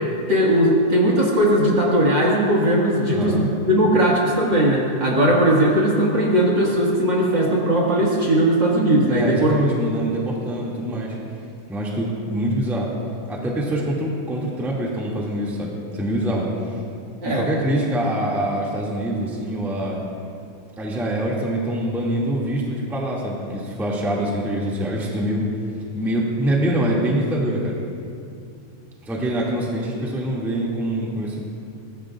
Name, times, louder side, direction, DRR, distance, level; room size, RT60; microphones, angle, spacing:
voice 1, 0.3-9.5 17.2-17.5, right 1 dB, 40° right, -5 dB, 2.3 m, -18 dB
voice 2, 3.1-3.5 9.1-11.1 11.7-12.9 13.3-16.5 17.2-20.0 20.8-25.5 25.9-27.8 29.0-31.4, right 1 dB, ahead, -4 dB, 1.7 m, -24 dB
24.0 x 19.0 x 2.5 m, 2.5 s
omnidirectional pair, 3.7 m